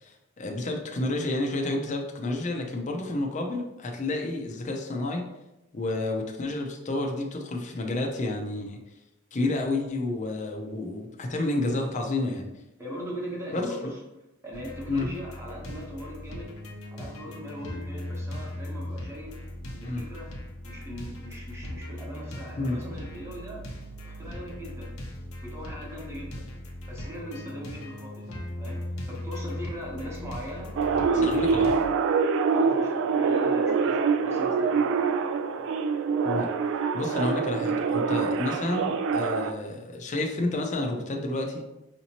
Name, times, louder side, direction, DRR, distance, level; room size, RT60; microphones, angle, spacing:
voice 1, 0.0-5.2 5.7-8.8 9.3-12.5 13.5-13.9 14.9-15.1 19.8-20.0 22.6-22.8 31.1-31.8 36.2-36.5 36.9-41.6, left 2 dB, 35° left, 1 dB, 0.5 m, -30 dB
voice 2, 12.8-14.0 14.4-16.5 16.9-19.3 19.7-20.3 20.6-23.6 24.0-24.9 25.4-26.4 26.9-28.3 28.6-28.8 29.1-31.8 32.5-35.1 35.5-35.7, equal, 15° right, -3 dB, 1.0 m, -40 dB
sound 1, 14.5-31.9, left 1 dB, 85° left, 0.7 m, -38 dB
sound 2, 30.8-39.5, right 5 dB, 65° right, 0.3 m, -25 dB
5.0 x 2.8 x 2.8 m, 0.94 s
head